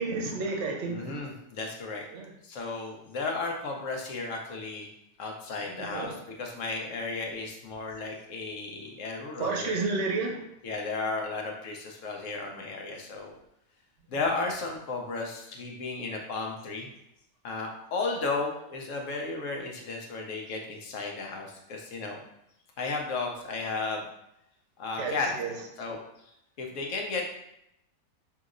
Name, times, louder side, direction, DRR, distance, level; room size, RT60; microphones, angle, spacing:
voice 1, 0.0-1.2 2.1-2.3 5.7-6.1 9.4-10.4 14.1-14.2 25.0-25.5, right 3 dB, 60° right, 1 dB, 0.9 m, -31 dB
voice 2, 0.9-2.0 2.4-4.9 5.2-9.7 10.6-13.4 14.1-16.9 17.4-22.2 22.8-24.0 24.8-25.3 25.8-26.0 26.6-27.4, left 3 dB, 65° left, 1 dB, 1.0 m, -34 dB
5.4 x 2.9 x 2.5 m, 0.78 s
omnidirectional pair, 1.6 m